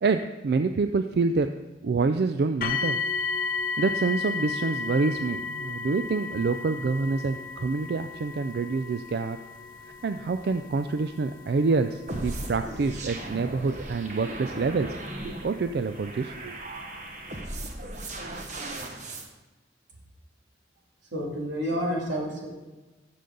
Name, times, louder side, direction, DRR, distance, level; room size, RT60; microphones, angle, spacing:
voice 1, 0.0-1.5 1.8-3.0 3.8-9.4 10.0-15.0 15.2-16.6, right 4 dB, 60° right, 8 dB, 0.3 m, -27 dB
sound 1, 2.6-15.5 16.3-16.4 17.0-17.1, left 4 dB, 50° left, 0.7 m, -34 dB
sound 2, 12.1-19.3, right 1 dB, 40° right, 1.1 m, -37 dB
voice 2, 21.1-22.5, equal, 85° right, -2 dB, 2.5 m, -29 dB
13.0 x 6.8 x 3.8 m, 1.2 s
head